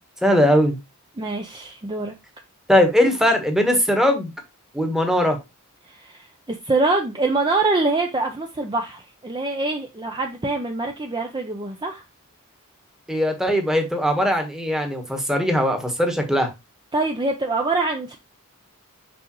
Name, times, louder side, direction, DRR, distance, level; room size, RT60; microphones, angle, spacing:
voice 1, 0.2-0.8 2.7-4.3 4.7-5.4 13.1-16.5, equal, ahead, 1.2 m, -20 dB
voice 2, 1.2-2.1 5.9-12.0 16.9-18.2, right 3 dB, 20° right, 0.6 m, -24 dB
6.2 x 5.1 x 3.0 m
head